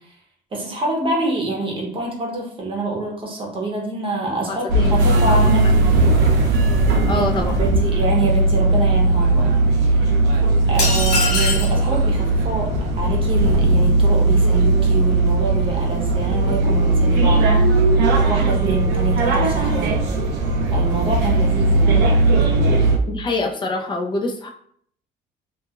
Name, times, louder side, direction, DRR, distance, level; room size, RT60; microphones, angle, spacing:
voice 1, 0.5-5.7 7.1-7.3 7.6-10.2 10.7-17.6 18.1-19.9 20.7-22.0, right 2 dB, 30° right, -1 dB, 0.9 m, -26 dB
voice 2, 4.5-5.5 7.0-7.7 23.1-24.5, left 2 dB, 30° left, 2 dB, 0.5 m, -26 dB
sound 1, 4.7-23.0, right 2 dB, 80° right, 0.6 m, -17 dB
sound 2, 10.8-11.8, left 3 dB, 70° left, 0.9 m, -22 dB
2.6 x 2.3 x 2.8 m, 0.62 s
cardioid pair, 110°, 17 cm